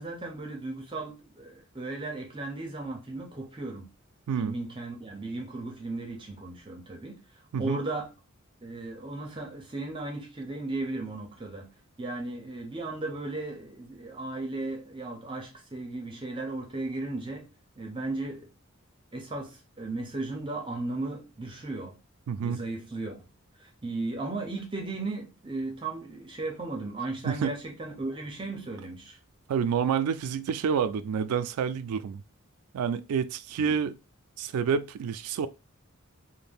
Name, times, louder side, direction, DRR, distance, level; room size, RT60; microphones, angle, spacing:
voice 1, 0.0-3.9 4.4-7.2 7.6-8.1 8.6-11.7 12.0-17.5 17.8-18.5 19.1-22.0 22.4-23.2 23.6-29.2 33.6-33.7, right 2 dB, 25° right, 0.5 m, -36 dB
voice 2, 22.3-22.6 27.2-27.5 29.5-32.2 32.7-34.0 34.4-35.5, right 7 dB, 85° right, 0.3 m, -28 dB
2.5 x 2.1 x 3.5 m
head